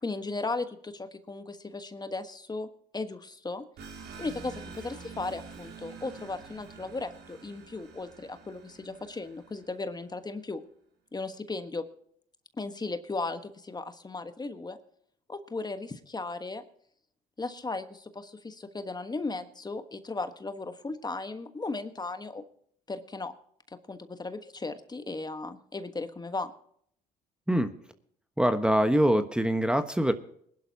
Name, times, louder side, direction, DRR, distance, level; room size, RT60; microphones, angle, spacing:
voice 1, 0.0-3.6 4.2-10.6 11.1-11.8 12.6-14.8 15.3-16.6 17.4-22.4 22.9-23.3 23.7-26.5, left 3 dB, 25° left, 9 dB, 1.3 m, -36 dB
sound 1, 3.8-10.0, right 5 dB, 70° right, 3.8 m, -47 dB
voice 2, 28.4-30.1, equal, 5° right, 8 dB, 1.3 m, -24 dB
21.0 x 11.5 x 2.9 m, 0.64 s
hypercardioid pair, 65°, 18 cm